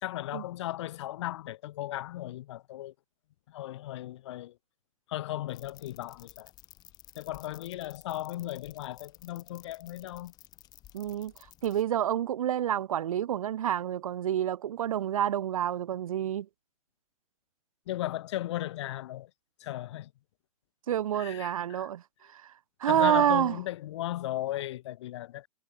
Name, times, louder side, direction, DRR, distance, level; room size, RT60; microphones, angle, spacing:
voice 1, 0.0-2.9 3.5-4.5 5.1-6.5 7.2-10.3 17.9-19.3 19.6-20.1 21.1-21.9 22.9-25.5, left 14 dB, 55° left, 2.0 m, -36 dB
sound 1, 5.5-11.8, left 14 dB, 25° left, 6.1 m, -55 dB
voice 2, 10.9-11.3 11.6-16.5 20.9-22.0 22.3-22.5 22.8-23.6, right 10 dB, 75° right, 2.1 m, -28 dB
supercardioid pair, 165°, 18 cm